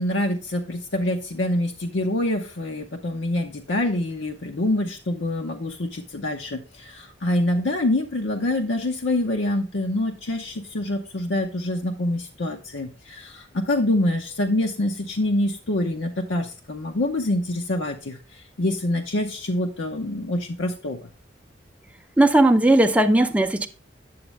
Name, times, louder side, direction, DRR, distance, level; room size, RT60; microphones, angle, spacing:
voice 1, 0.0-21.0, left 1 dB, 80° left, 0.7 m, -26 dB
voice 2, 22.2-23.7, right 1 dB, 10° right, 0.5 m, -17 dB
8.6 x 7.1 x 3.2 m
head